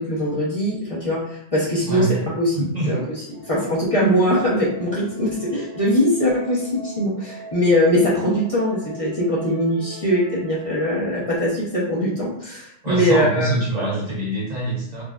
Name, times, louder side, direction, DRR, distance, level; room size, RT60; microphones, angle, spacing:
voice 1, 0.0-2.6 2.9-3.0 3.4-13.9, equal, 35° left, -7 dB, 0.9 m, -21 dB
voice 2, 1.8-2.3 2.7-2.9 12.8-15.0, right 2 dB, 40° right, -5 dB, 0.8 m, -25 dB
sound 1, 3.3-11.4, right 1 dB, 80° left, 1.8 m, -42 dB
5.0 x 2.2 x 2.4 m, 0.74 s
omnidirectional pair, 1.2 m